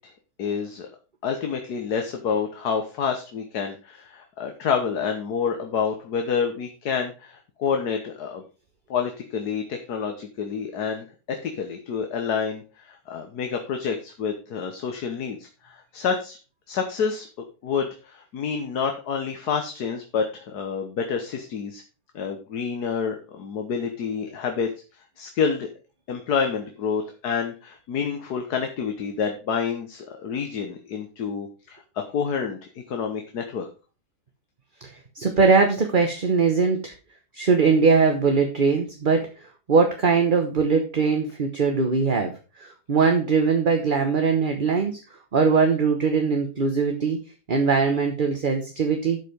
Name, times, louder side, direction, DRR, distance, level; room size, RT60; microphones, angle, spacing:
voice 1, 0.4-0.9 1.2-8.4 8.9-16.4 16.7-17.3 17.6-21.8 22.2-24.7 25.2-25.7 26.1-33.7, left 6 dB, 70° left, 4 dB, 1.6 m, -28 dB
voice 2, 34.8-36.9 37.3-42.3 42.6-44.9 45.3-47.2 47.5-49.2, right 5 dB, 35° right, 4 dB, 1.1 m, -21 dB
12.0 x 5.0 x 5.0 m, 0.34 s
omnidirectional pair, 1.8 m